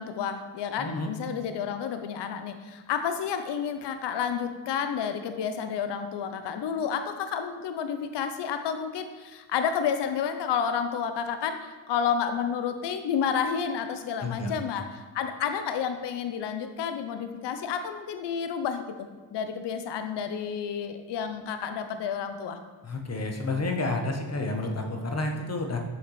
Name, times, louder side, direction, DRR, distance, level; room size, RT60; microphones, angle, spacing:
voice 1, 0.0-22.6, left 7 dB, 60° left, 8 dB, 0.7 m, -30 dB
voice 2, 0.8-1.1 14.2-14.5 22.8-25.8, left 2 dB, 30° left, 3 dB, 1.1 m, -30 dB
6.4 x 5.9 x 3.1 m, 1.3 s
cardioid pair, 70°, 48 cm